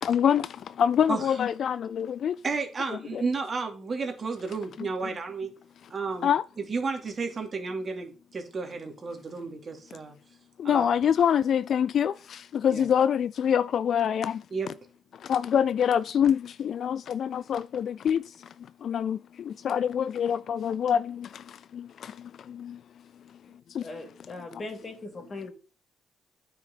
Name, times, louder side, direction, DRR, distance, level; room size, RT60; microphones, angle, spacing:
voice 1, 0.0-2.4 3.1-3.2 4.8-4.9 6.2-6.4 10.6-14.4 15.1-18.5 18.8-22.8 23.7-23.9, left 8 dB, 60° left, 0.4 m, -26 dB
voice 2, 1.1-1.4 2.4-5.5 5.9-6.3 6.6-10.1 10.6-10.9 12.7-12.9 14.5-14.7, right 4 dB, 40° right, 2.8 m, -32 dB
voice 3, 23.8-25.5, left 2 dB, 35° left, 3.7 m, -39 dB
9.3 x 6.2 x 5.7 m
cardioid pair, 90°, 0 cm